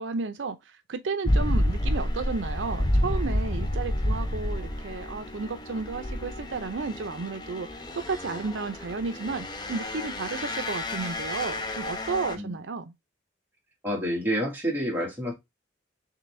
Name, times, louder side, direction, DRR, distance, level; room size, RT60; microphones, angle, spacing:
voice 1, 0.0-7.7 8.1-12.9, right 4 dB, 75° right, 0.5 m, -33 dB
sound 1, 1.2-12.4, left 1 dB, 20° left, 0.5 m, -30 dB
voice 2, 13.8-15.3, equal, 10° right, 1.6 m, -28 dB
3.8 x 3.3 x 3.1 m
head